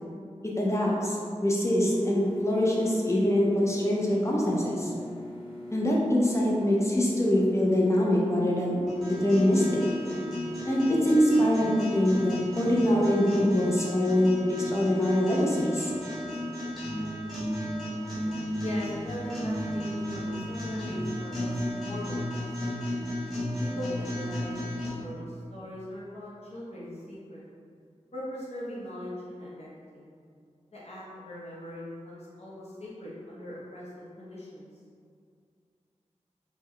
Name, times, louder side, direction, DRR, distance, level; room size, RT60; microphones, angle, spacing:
voice 1, 0.6-4.9 5.7-8.8 9.0-9.8 10.7-15.9, left 1 dB, 25° left, -4 dB, 0.5 m, -24 dB
sound 1, 1.7-12.8, left 1 dB, 40° right, 0.7 m, -40 dB
sound 2, 8.9-24.9, equal, ahead, 1.3 m, -34 dB
voice 2, 18.6-22.4 22.6-22.8 23.6-27.4 28.1-30.1 30.7-34.7, left 1 dB, 60° left, -7 dB, 0.9 m, -40 dB
3.6 x 2.2 x 3.1 m, 2.3 s
wide cardioid pair, 85°, 12 cm